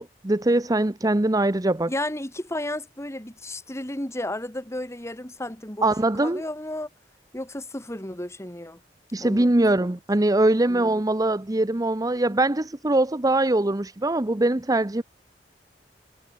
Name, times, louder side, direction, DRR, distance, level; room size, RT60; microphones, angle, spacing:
voice 1, 0.0-1.9 5.8-6.4 9.1-15.0, right 2 dB, 20° right, 0.8 m, -22 dB
voice 2, 1.9-5.9 6.2-6.9 7.3-8.8 9.2-9.5 9.8-9.9 10.6-10.9, left 1 dB, 15° left, 3.0 m, -33 dB
head